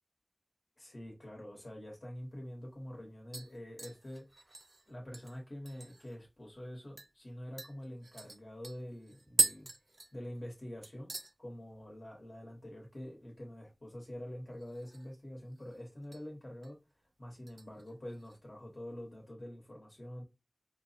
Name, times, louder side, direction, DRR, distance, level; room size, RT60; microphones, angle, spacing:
voice 1, 0.8-9.7 10.1-11.1 11.4-16.8 17.2-20.2, equal, 70° left, 1.1 m, -46 dB
sound 1, 2.2-2.3 2.7-3.0 3.3-6.2 6.5-6.6 7.0-7.1 7.6-10.6 10.8-11.3 11.7-12.1 12.3-12.4 14.5-15.2 15.5-16.2 16.6-16.9 17.5-18.4 18.7-18.8, right 2 dB, 75° right, 0.4 m, -39 dB
4.6 x 2.0 x 2.8 m
wide cardioid pair, 45°, 0 cm